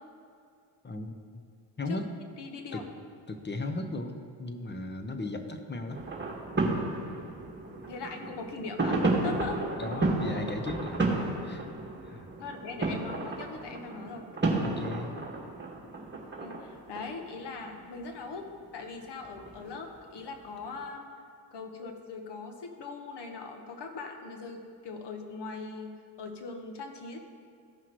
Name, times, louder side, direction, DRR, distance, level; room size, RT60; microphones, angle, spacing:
voice 1, 0.8-1.4 1.8-2.0 2.7-2.8 3.3-6.0 9.4-11.1 11.4-11.6 12.0-12.3 14.6-15.2, left 2 dB, 20° left, 7 dB, 0.9 m, -36 dB
voice 2, 2.4-2.9 7.9-9.6 12.4-14.3 16.4-18.5 18.7-21.1 21.5-27.2, left 4 dB, 55° left, 4 dB, 1.3 m, -40 dB
sound 1, 5.9-18.5 19.0-19.8 20.5-20.6, right 2 dB, 20° right, 1.7 m, -32 dB
14.5 x 5.7 x 3.1 m, 2.3 s
supercardioid pair, 70°, 49 cm